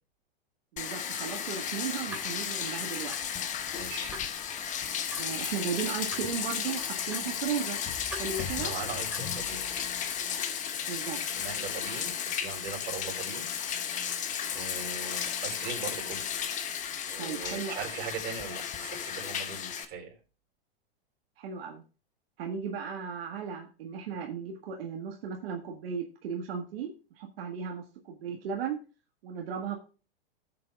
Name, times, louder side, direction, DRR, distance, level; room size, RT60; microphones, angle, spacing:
voice 1, 0.7-3.2 5.2-7.8 8.1-8.7 10.9-11.2 17.2-17.9 21.4-21.8 22.4-28.8 29.2-29.8, right 7 dB, 70° right, 1 dB, 1.7 m, -36 dB
Bathtub (filling or washing), 0.8-19.9, left 8 dB, 25° left, 1.0 m, -34 dB
sound 1, 1.7-9.5, right 1 dB, 5° right, 2.9 m, -48 dB
voice 2, 3.7-4.1 8.4-9.9 11.1-13.5 14.5-16.2 17.1-20.2, right 5 dB, 30° right, 1 dB, 4.0 m, -40 dB
16.0 x 7.7 x 2.4 m, 0.34 s
hypercardioid pair, 130°, 30 cm